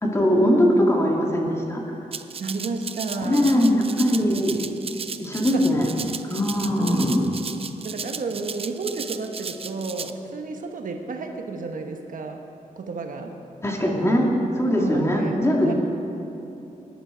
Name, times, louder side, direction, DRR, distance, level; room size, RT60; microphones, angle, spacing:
voice 1, 0.0-1.8 3.2-4.6 5.2-5.9 6.3-7.3 13.6-15.7, equal, 20° left, -1 dB, 2.2 m, -21 dB
Rattle (instrument), 2.1-10.1, right 6 dB, 40° right, 0.5 m, -35 dB
voice 2, 2.4-3.6 5.5-5.9 7.8-12.5 12.8-13.4 14.8-15.4 15.6-15.7, right 3 dB, 70° right, 4 dB, 1.2 m, -31 dB
19.0 x 10.5 x 5.1 m, 2.9 s
wide cardioid pair, 110°, 14 cm